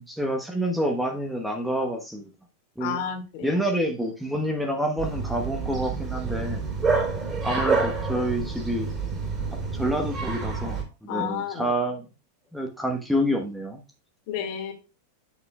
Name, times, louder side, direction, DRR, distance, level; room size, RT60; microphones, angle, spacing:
voice 1, 0.0-2.3 2.8-3.1 3.4-6.6 7.4-8.9 9.7-12.0 12.5-13.8, equal, ahead, 2 dB, 1.2 m, -28 dB
voice 2, 2.8-3.6 11.1-11.7 14.3-14.7, left 8 dB, 45° left, 4 dB, 1.9 m, -31 dB
Bark, 5.0-10.8, right 4 dB, 20° right, 3.3 m, -28 dB
8.5 x 7.4 x 2.3 m, 0.31 s
figure-of-eight pair, 90°, 0 cm